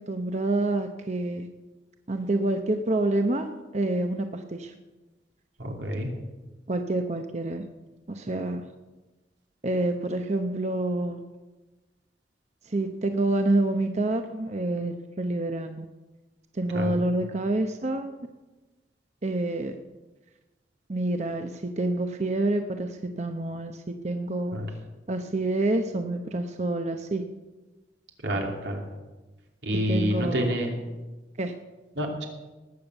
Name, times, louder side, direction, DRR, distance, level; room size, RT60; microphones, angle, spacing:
voice 1, 0.0-1.5 2.1-4.7 6.7-7.6 8.1-8.6 9.6-11.2 12.6-15.9 16.5-18.1 19.2-19.7 20.9-24.6 25.1-27.2 29.9-30.5 31.4-31.5, right 2 dB, 40° right, 6 dB, 0.8 m, -27 dB
voice 2, 5.6-6.1 16.7-16.9 24.5-24.7 28.2-28.8 29.6-30.7 32.0-32.2, equal, 90° right, 1 dB, 2.9 m, -28 dB
19.0 x 7.1 x 8.0 m, 1.2 s
head